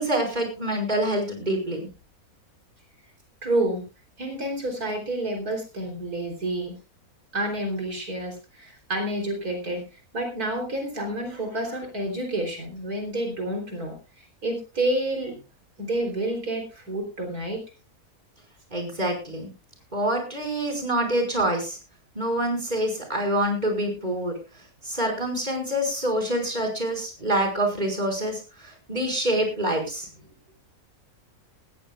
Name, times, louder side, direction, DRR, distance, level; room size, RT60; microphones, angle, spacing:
voice 1, 0.0-1.8 18.7-19.5 19.9-21.8 22.2-24.3 24.8-30.1, right 1 dB, 30° right, 3 dB, 5.5 m, -26 dB
voice 2, 3.4-3.8 4.2-6.7 7.3-15.3 15.8-17.6, right 1 dB, 75° right, 2 dB, 4.1 m, -29 dB
20.0 x 15.0 x 2.4 m, 0.31 s
omnidirectional pair, 1.6 m